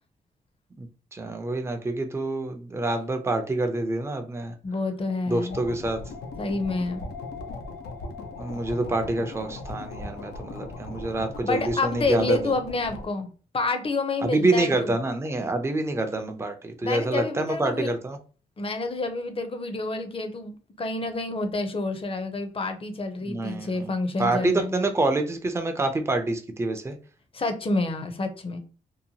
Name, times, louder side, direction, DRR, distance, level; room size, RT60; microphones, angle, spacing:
voice 1, 1.1-4.5 5.3-6.0 8.4-12.5 14.2-18.2 23.2-23.9 24.2-27.0, right 2 dB, 15° right, 6 dB, 0.5 m, -27 dB
voice 2, 4.6-5.6 6.4-7.1 11.4-13.3 13.5-14.9 16.8-17.9 18.6-24.7 27.3-28.6, left 2 dB, 35° left, 7 dB, 0.6 m, -28 dB
sound 1, 5.5-13.1, left 3 dB, 90° left, 0.5 m, -38 dB
2.8 x 2.1 x 2.8 m, 0.37 s
cardioid pair, 55°, 16 cm